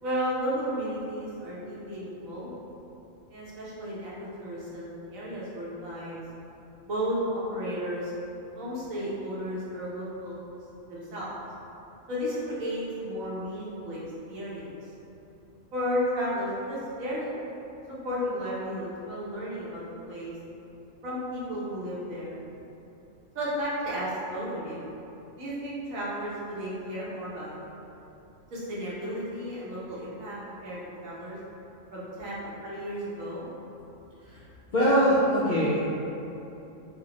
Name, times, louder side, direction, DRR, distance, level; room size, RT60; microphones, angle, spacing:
voice 1, 0.0-2.5 3.3-6.2 6.8-8.1 8.5-10.5 10.9-11.3 12.1-14.0 14.3-14.9 15.7-17.3 18.0-20.3 21.0-22.4 23.3-24.8 25.4-27.5 28.5-31.4 31.9-33.5, equal, 85° right, -7 dB, 1.3 m, -33 dB
voice 2, 34.7-35.8, equal, 70° left, -8 dB, 0.4 m, -22 dB
4.8 x 2.2 x 2.8 m, 3.0 s
omnidirectional pair, 1.4 m